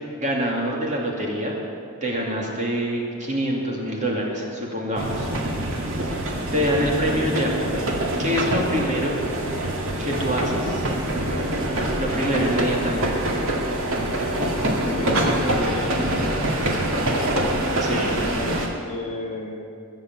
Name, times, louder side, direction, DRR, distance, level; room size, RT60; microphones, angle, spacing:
voice 1, 0.2-1.6 2.0-5.3 6.5-7.6 8.2-9.2 10.0-10.8 12.0-13.2 17.8-18.3, equal, 35° right, -2 dB, 2.5 m, -25 dB
sound 1, 5.0-18.7, right 1 dB, 60° right, 2.0 m, -25 dB
voice 2, 14.6-16.0 18.3-19.7, left 2 dB, 30° left, -1 dB, 1.8 m, -32 dB
21.5 x 7.2 x 7.9 m, 2.5 s
head